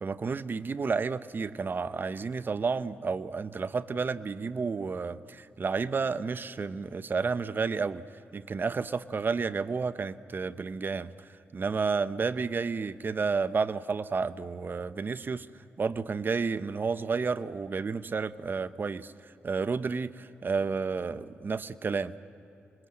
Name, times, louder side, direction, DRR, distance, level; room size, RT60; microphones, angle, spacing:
voice 1, 0.0-8.0 8.3-15.5 15.8-22.1, right 5 dB, 50° right, 14 dB, 0.8 m, -31 dB
26.0 x 21.5 x 7.8 m, 2.9 s
cardioid pair, 60°, 5 cm